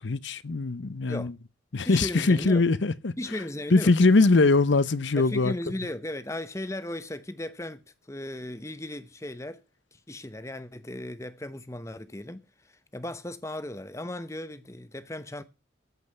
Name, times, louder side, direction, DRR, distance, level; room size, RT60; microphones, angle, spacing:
voice 1, 0.0-1.3 1.7-3.1 3.7-5.5, left 3 dB, 80° left, 0.7 m, -22 dB
voice 2, 1.9-2.6 3.2-3.9 5.2-9.6 9.9-15.4, left 1 dB, 15° left, 0.9 m, -36 dB
14.0 x 5.5 x 7.9 m
head